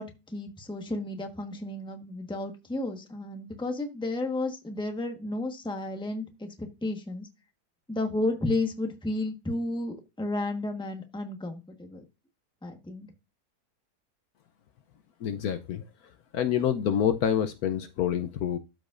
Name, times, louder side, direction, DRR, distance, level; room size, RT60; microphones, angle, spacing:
voice 1, 0.0-7.3 7.9-12.0 12.6-13.1, left 2 dB, 5° left, 5 dB, 1.0 m, -32 dB
voice 2, 15.2-15.8 16.3-18.6, left 9 dB, 70° left, 9 dB, 1.0 m, -27 dB
13.0 x 5.0 x 2.5 m, 0.26 s
omnidirectional pair, 1.8 m